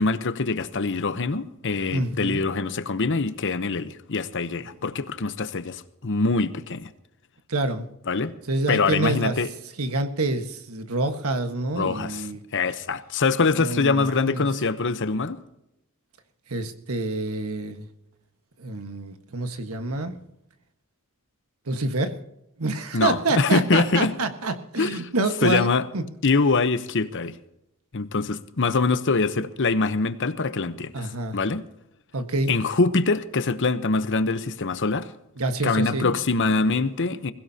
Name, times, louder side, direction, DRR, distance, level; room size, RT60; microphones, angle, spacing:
voice 1, 0.0-6.9 8.1-8.3 8.7-9.5 11.8-12.2 12.5-15.4 22.9-24.1 24.8-25.0 25.4-25.8 26.2-27.3 27.9-31.0 31.3-31.6 32.5-35.1 35.6-37.3, left 3 dB, 55° left, 0.9 m, -24 dB
voice 2, 1.9-2.4 7.5-7.9 8.5-9.3 9.8-12.4 13.5-14.5 16.5-17.9 18.6-20.2 21.7-22.1 22.6-26.0 30.9-31.4 32.1-32.5 35.4-36.1, right 2 dB, 75° right, 1.5 m, -27 dB
21.5 x 16.5 x 2.9 m
head